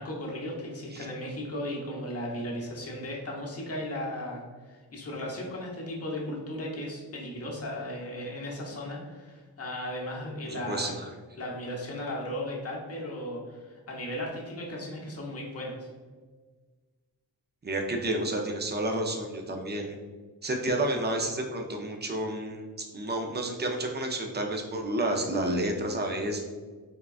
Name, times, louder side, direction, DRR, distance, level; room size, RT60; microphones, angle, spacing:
voice 1, 0.0-11.0 11.4-15.9, left 1 dB, 40° left, -2 dB, 0.8 m, -36 dB
voice 2, 10.4-10.9 17.6-20.0 20.4-22.7 22.9-26.4, right 1 dB, 25° right, 2 dB, 0.5 m, -30 dB
3.6 x 2.2 x 2.4 m, 1.4 s
cardioid pair, 50°, 39 cm